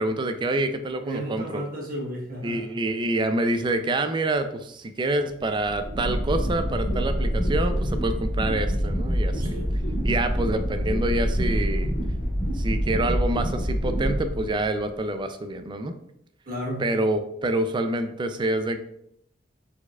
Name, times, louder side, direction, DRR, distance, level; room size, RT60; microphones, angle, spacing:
voice 1, 0.0-1.6 2.4-9.6 10.0-11.9 12.5-15.9 16.8-18.8, right 2 dB, 25° right, 8 dB, 0.3 m, -27 dB
voice 2, 1.0-2.7 9.4-9.7 16.5-16.9, equal, 50° right, -1 dB, 1.2 m, -33 dB
sound 1, 5.4-14.9, equal, 55° left, 0.9 m, -26 dB
4.6 x 4.1 x 2.3 m, 0.73 s
head